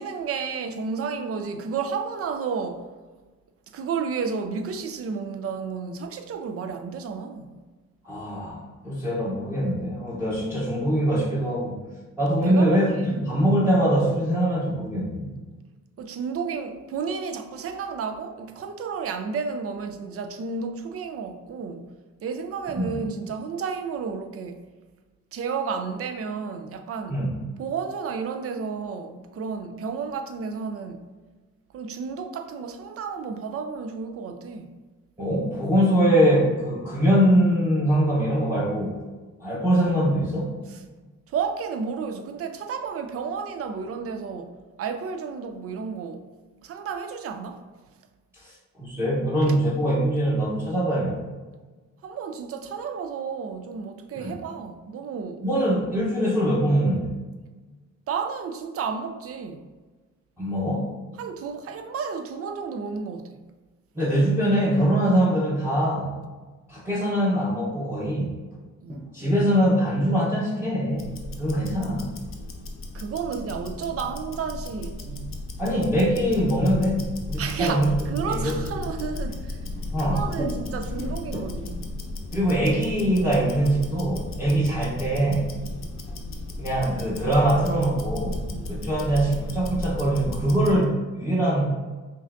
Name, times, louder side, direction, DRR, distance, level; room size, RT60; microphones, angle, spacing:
voice 1, 0.0-2.9 3.7-7.5 12.4-13.3 16.0-21.9 22.2-24.7 25.3-27.2 27.6-31.1 31.7-34.7 40.7-40.8 41.3-46.3 46.6-47.6 52.0-55.4 58.1-59.6 61.2-63.4 68.8-69.1 72.9-75.5 77.4-79.6 80.0-82.0 88.5-88.8, right 5 dB, 50° right, 0.5 m, -32 dB
voice 2, 8.0-11.8 12.2-15.3 22.8-23.0 27.1-27.4 35.2-38.9 39.4-40.5 48.4-48.5 48.8-51.2 54.2-54.3 55.4-57.1 60.4-60.9 63.9-66.2 66.7-68.4 68.9-72.2 75.6-78.7 79.9-80.5 81.0-81.1 81.3-81.5 82.3-85.5 86.6-91.7, right 1 dB, 10° right, 1.0 m, -23 dB
Tick-tock, 70.9-90.8, left 2 dB, 45° left, 0.7 m, -35 dB
5.4 x 2.6 x 2.6 m
cardioid pair, 90°, 30 cm